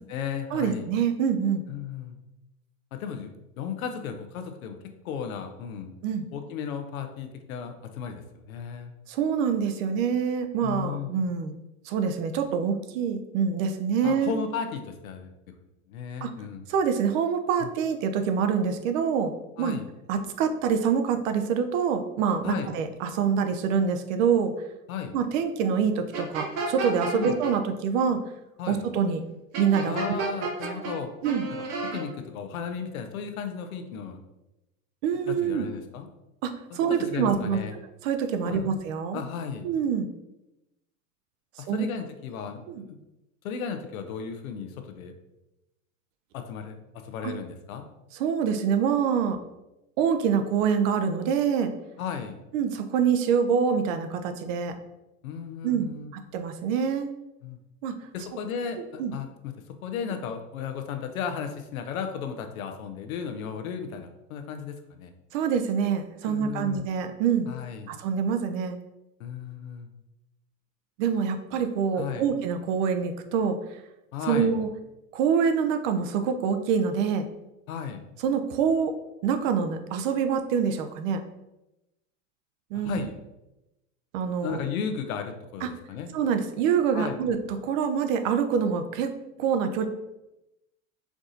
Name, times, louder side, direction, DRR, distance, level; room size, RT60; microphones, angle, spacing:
voice 1, 0.0-0.9 1.7-2.2 2.9-4.8 5.0-5.9 6.3-8.9 10.6-11.1 14.0-15.3 15.9-16.6 17.6-17.7 19.6-19.9 22.4-22.7 24.9-25.2 27.1-27.4 28.6-28.9 29.9-31.1 31.5-31.6 31.9-34.2 35.2-36.1 36.9-37.7 38.4-38.7 39.1-39.7 41.6-43.0 43.4-45.1 46.3-46.8 47.0-47.9 52.0-52.4 55.2-56.1 57.4-57.6 58.1-59.5 59.8-65.1 66.2-66.9 67.5-67.9 69.2-69.9 71.9-72.2 74.1-74.5 77.7-78.0 82.7-83.2 84.4-86.1 86.9-87.2, left 7 dB, 85° left, 7 dB, 0.7 m, -35 dB
voice 2, 0.5-1.6 6.0-6.3 9.1-11.6 11.9-14.4 16.2-16.3 16.7-19.8 20.1-24.5 25.1-28.2 28.7-29.2 29.6-30.2 31.2-31.5 35.0-35.7 36.4-37.6 38.0-39.2 39.6-40.1 41.7-41.9 42.7-42.8 47.2-47.3 48.2-49.4 50.0-51.7 52.5-54.8 55.6-55.9 56.1-57.1 57.8-57.9 59.0-59.1 65.3-67.5 67.9-68.8 71.0-73.6 74.3-74.7 75.1-77.3 78.2-78.9 79.2-81.2 82.7-83.0 84.1-84.6 85.6-85.7 86.1-87.4 87.6-89.1 89.4-89.9, right 7 dB, 70° right, 8 dB, 0.6 m, -25 dB
sound 1, 26.1-27.5 29.5-30.9 31.2-32.0, right 3 dB, 45° right, 1.2 m, -31 dB
4.7 x 2.7 x 3.7 m, 0.95 s
supercardioid pair, 110°, 41 cm